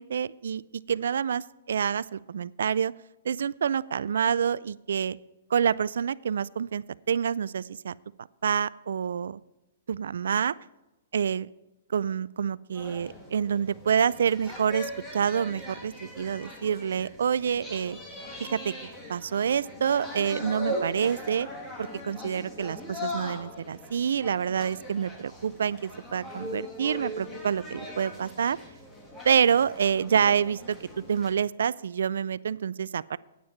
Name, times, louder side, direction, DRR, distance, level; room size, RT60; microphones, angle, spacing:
voice 1, 0.0-2.9 3.2-5.2 5.5-7.9 8.4-9.4 9.9-10.5 11.1-11.5 11.9-18.0 18.4-21.5 21.8-28.6 29.2-33.2, right 7 dB, 75° right, 20 dB, 0.3 m, -27 dB
sound 1, 12.7-31.3, left 1 dB, 15° left, 2.4 m, -40 dB
9.4 x 8.9 x 5.7 m, 1.0 s
hypercardioid pair, 140°, 0 cm